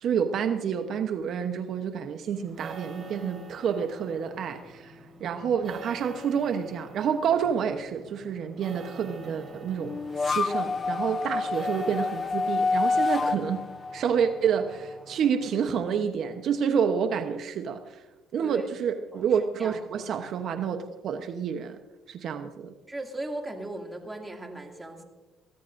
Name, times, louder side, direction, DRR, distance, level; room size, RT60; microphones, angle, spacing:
voice 1, 0.0-13.7 13.9-18.0 18.3-21.8 22.1-22.7, right 7 dB, 60° right, 6 dB, 0.9 m, -28 dB
sound 1, 2.3-15.9, right 2 dB, 35° right, 3.9 m, -47 dB
sound 2, 9.8-15.0, left 4 dB, 35° left, 0.6 m, -28 dB
voice 2, 22.9-25.0, right 2 dB, 15° right, 1 dB, 2.4 m, -37 dB
23.0 x 15.0 x 2.6 m, 1.1 s
cardioid pair, 105°, 0 cm